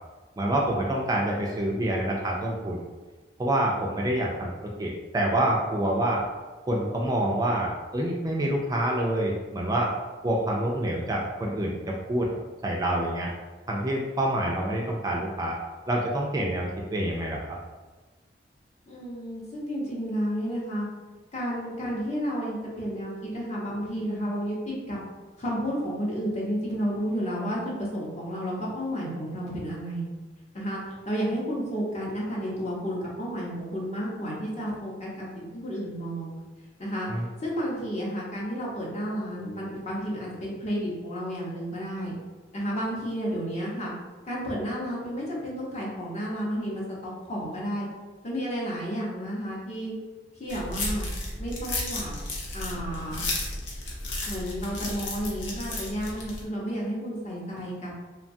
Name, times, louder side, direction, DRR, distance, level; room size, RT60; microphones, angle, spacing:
voice 1, 0.4-2.9 3.4-6.2 6.7-9.9 10.2-12.3 12.6-13.3 13.7-15.5 15.9-17.6 37.1-37.3, right 1 dB, 20° right, -2 dB, 0.3 m, -27 dB
voice 2, 18.9-20.9 21.3-25.0 25.4-30.1 30.5-36.3 36.8-42.1 42.5-43.9 44.3-47.9 48.2-49.9 50.3-51.1 51.4-52.1 52.5-53.2 54.3-57.9, equal, 40° left, -5 dB, 0.8 m, -31 dB
sound 1, 50.5-56.4, left 2 dB, 85° left, 0.7 m, -33 dB
3.0 x 2.2 x 2.6 m, 1.2 s
head